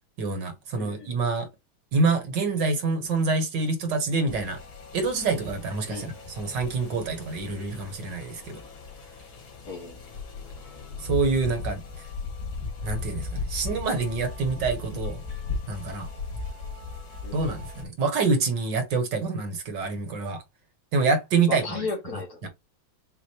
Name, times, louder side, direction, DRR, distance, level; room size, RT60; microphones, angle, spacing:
voice 1, 0.2-1.5 1.9-4.6 4.9-8.6 11.0-11.8 12.8-15.2 15.7-16.1 17.3-20.4 20.9-21.9 22.4-22.5, right 4 dB, 65° right, 1.8 m, -26 dB
voice 2, 0.8-1.1 5.9-6.2 9.6-10.0 17.2-17.5 21.5-22.5, left 4 dB, 50° left, 1.7 m, -35 dB
sound 1, 4.3-17.8, left 4 dB, 80° left, 2.7 m, -37 dB
6.4 x 2.5 x 2.8 m
omnidirectional pair, 2.2 m